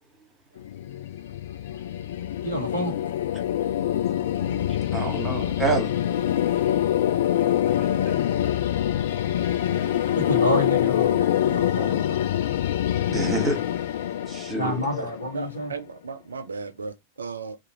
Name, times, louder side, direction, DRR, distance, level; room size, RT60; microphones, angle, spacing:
sound 1, 0.6-15.6, left 11 dB, 60° left, 0.4 m, -25 dB
voice 1, 2.4-2.9 10.1-12.3 14.6-15.7, equal, 80° left, 1.3 m, -30 dB
voice 2, 4.9-5.9 13.1-13.7 14.3-15.1, right 3 dB, 20° right, 1.2 m, -27 dB
voice 3, 15.3-17.6, right 4 dB, 75° right, 0.4 m, -35 dB
2.6 x 2.5 x 2.9 m
figure-of-eight pair, 90°, 0 cm